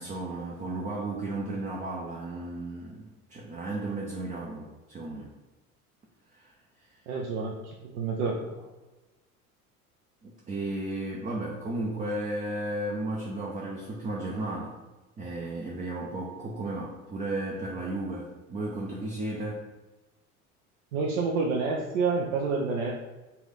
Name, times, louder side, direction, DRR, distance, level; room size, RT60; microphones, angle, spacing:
voice 1, 0.0-5.3 6.3-6.5 10.2-14.8 15.2-19.6, right 2 dB, 20° right, -3 dB, 0.6 m, -34 dB
voice 2, 7.1-8.6 20.9-22.9, right 4 dB, 60° right, 0 dB, 0.7 m, -29 dB
4.1 x 2.5 x 3.9 m, 1.1 s
figure-of-eight pair, 70°, 43 cm